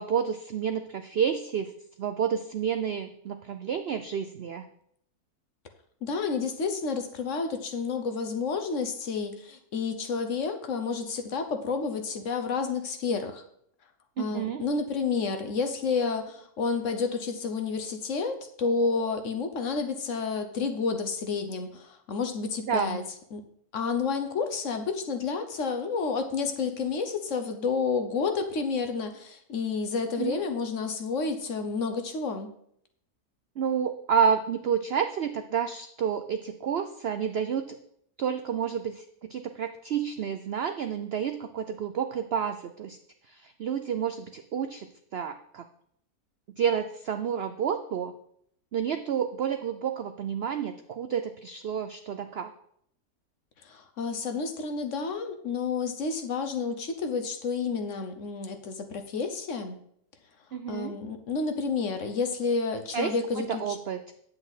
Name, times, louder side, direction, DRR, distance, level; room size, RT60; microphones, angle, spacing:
voice 1, 0.0-1.7 2.0-4.7 14.2-14.6 22.7-23.0 30.2-30.4 33.6-37.8 38.2-39.0 39.3-43.0 43.3-45.6 46.6-48.1 48.7-52.5 60.5-61.0 62.9-63.1 63.5-64.1, right 7 dB, 70° right, 8 dB, 0.6 m, -30 dB
voice 2, 6.0-13.4 14.2-23.0 23.3-23.4 23.7-32.5 53.6-59.8 60.7-63.8, left 4 dB, 55° left, 7 dB, 1.2 m, -30 dB
9.4 x 8.0 x 4.1 m, 0.69 s
omnidirectional pair, 1.7 m